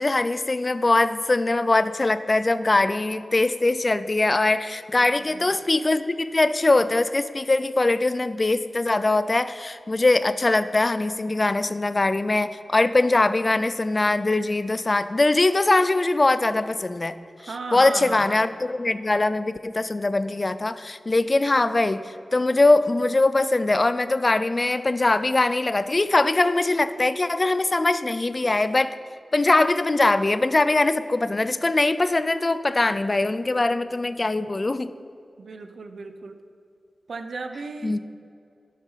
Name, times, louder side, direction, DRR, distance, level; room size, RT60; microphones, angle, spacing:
voice 1, 0.0-17.1 17.7-29.0 29.3-34.9 37.8-38.0, left 2 dB, 35° left, 14 dB, 0.4 m, -22 dB
voice 2, 5.0-5.5 17.5-18.4 35.4-36.4 37.1-38.0, right 4 dB, 80° right, 8 dB, 0.8 m, -36 dB
11.5 x 7.3 x 5.7 m, 2.5 s
wide cardioid pair, 95°, 0 cm